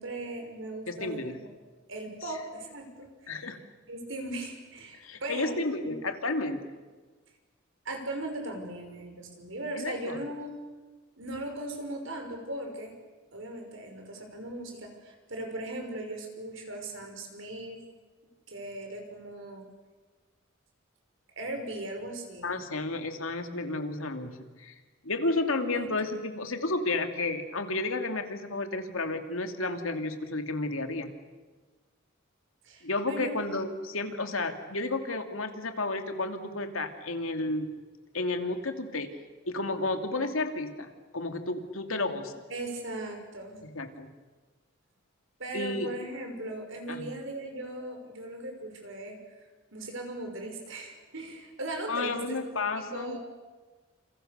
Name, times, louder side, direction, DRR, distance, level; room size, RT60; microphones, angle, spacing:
voice 1, 0.0-1.5 1.9-3.4 3.9-5.6 5.8-6.0 7.8-10.5 11.2-12.9 13.3-17.8 18.5-19.7 21.4-22.6 25.7-25.9 32.6-33.4 42.5-43.6 45.4-49.4 49.7-52.4 52.8-53.2, right 2 dB, 65° right, 4 dB, 6.0 m, -38 dB
voice 2, 0.9-1.4 2.2-2.3 3.3-3.6 5.0-6.7 9.7-10.2 22.4-24.8 25.0-31.1 32.8-37.7 38.1-39.1 39.5-42.4 43.7-44.1 45.5-45.9 46.9-47.1 51.9-53.2, left 2 dB, 80° left, 6 dB, 2.7 m, -32 dB
29.0 x 28.5 x 6.8 m, 1.3 s
head